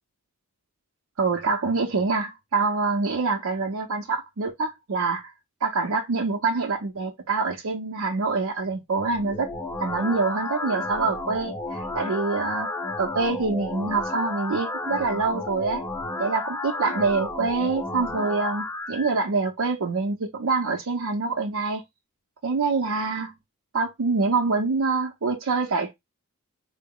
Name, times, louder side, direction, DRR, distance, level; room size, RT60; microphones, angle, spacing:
voice 1, 1.2-5.3 5.6-9.5 9.8-12.7 13.0-15.8 16.2-21.8 22.4-23.3 23.7-25.9, right 4 dB, 85° right, 0.6 m, -25 dB
sound 1, 9.1-19.1, left 2 dB, 10° left, 0.4 m, -32 dB
3.8 x 2.0 x 3.6 m
head